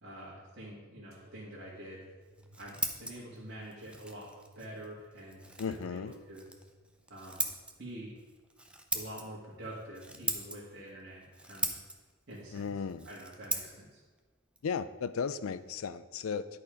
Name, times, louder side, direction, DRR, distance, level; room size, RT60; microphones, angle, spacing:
voice 1, 0.0-2.0 2.6-4.3 4.5-6.5 7.1-7.5 7.8-8.1 8.9-11.8 12.3-12.7 13.0-14.0, right 1 dB, 55° right, -7 dB, 1.8 m, -46 dB
sound 1, 1.1-8.3 8.8-9.6 10.4-10.9 11.9-12.0, right 1 dB, 85° right, 1.0 m, -64 dB
Scissors, 2.2-15.8, right 2 dB, 5° right, 0.6 m, -41 dB
voice 2, 5.6-6.1 12.5-13.1 14.6-16.5, left 6 dB, 70° left, 14 dB, 0.4 m, -35 dB
11.0 x 4.2 x 5.1 m, 1.3 s
head